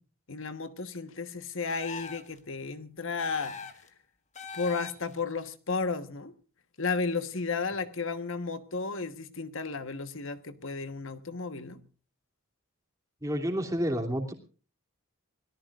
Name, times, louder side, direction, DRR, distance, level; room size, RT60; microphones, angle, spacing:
voice 1, 0.3-3.6 4.5-6.3 6.8-11.8, left 4 dB, 60° left, 1.3 m, -33 dB
sound 1, 1.7-2.4 3.2-3.9 4.3-5.2, left 5 dB, 30° left, 1.6 m, -42 dB
voice 2, 13.2-14.3, equal, 15° right, 2.8 m, -29 dB
25.5 x 18.0 x 2.5 m
head